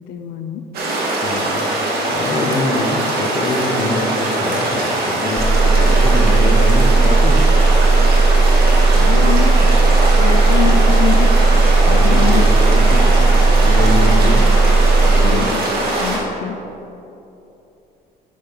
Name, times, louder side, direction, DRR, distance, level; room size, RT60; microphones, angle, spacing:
voice 1, 0.1-0.6 8.9-9.5 10.2-11.3 11.9-12.5 12.8-12.9 14.0-14.3 15.2-15.4 16.0-16.6, left 9 dB, 85° left, 5 dB, 0.6 m, -24 dB
sound 1, 0.7-16.2, right 2 dB, 65° right, 2.3 m, -21 dB
voice 2, 1.2-1.6 2.1-7.5 11.8-14.5 15.0-15.7, left 3 dB, 40° left, 4 dB, 1.1 m, -25 dB
sound 2, 5.4-15.4, right 3 dB, ahead, 0.5 m, -13 dB
sound 3, 9.0-14.4, equal, 25° right, 1.6 m, -30 dB
8.4 x 6.3 x 5.7 m, 2.8 s
cardioid pair, 110°, 17 cm